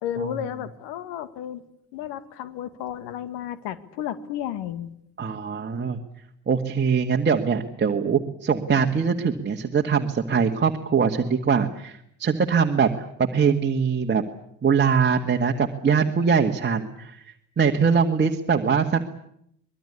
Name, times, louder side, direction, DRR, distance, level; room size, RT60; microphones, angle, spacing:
voice 1, 0.0-1.6 1.9-4.9, left 10 dB, 55° left, 14 dB, 2.1 m, -32 dB
voice 2, 5.2-6.0 6.5-14.2 14.6-19.0, right 6 dB, 20° right, 2 dB, 1.9 m, -22 dB
24.5 x 21.5 x 8.5 m, 0.74 s
figure-of-eight pair, 60°, 49 cm